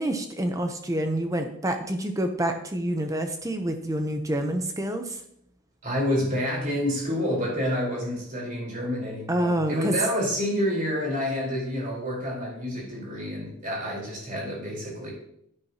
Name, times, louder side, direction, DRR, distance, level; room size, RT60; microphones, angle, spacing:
voice 1, 0.0-5.2 9.3-9.9, right 1 dB, 15° right, 6 dB, 0.7 m, -27 dB
voice 2, 5.8-15.1, equal, 40° right, -4 dB, 4.1 m, -28 dB
10.5 x 9.7 x 2.9 m, 0.71 s
head